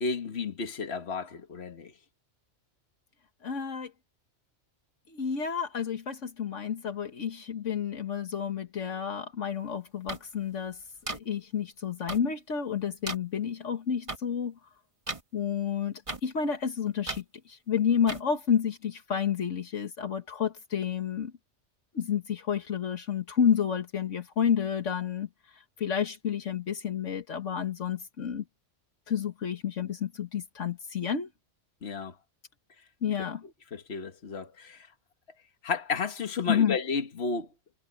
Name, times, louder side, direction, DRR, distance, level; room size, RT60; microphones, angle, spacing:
voice 1, 0.0-1.9 31.8-32.1 33.7-34.9 35.6-37.5, left 5 dB, 55° left, 1.8 m, -32 dB
voice 2, 3.4-3.9 5.1-10.8 11.1-14.5 15.3-21.3 21.9-25.3 25.8-28.4 29.1-31.3 33.0-33.4 36.5-36.8, left 8 dB, 75° left, 1.7 m, -30 dB
sound 1, 10.1-10.2 11.1-11.2 12.1-12.2 13.1-13.2 14.1-14.2 15.1-15.2 16.1-16.2 17.1-17.2 18.1-18.2, right 2 dB, 25° right, 1.5 m, -34 dB
omnidirectional pair, 1.3 m